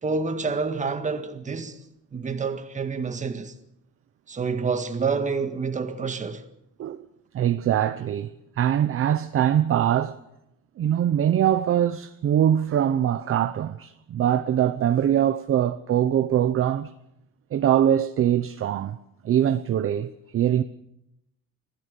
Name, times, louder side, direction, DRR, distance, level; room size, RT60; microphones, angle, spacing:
voice 1, 0.0-1.8 2.1-3.5 4.3-6.4, right 4 dB, 20° right, 1.8 m, -28 dB
voice 2, 7.3-10.2 10.8-16.9 17.5-19.0 19.2-20.6, right 10 dB, 40° right, 0.8 m, -23 dB
25.5 x 16.5 x 6.8 m
cardioid pair, 155°, 34 cm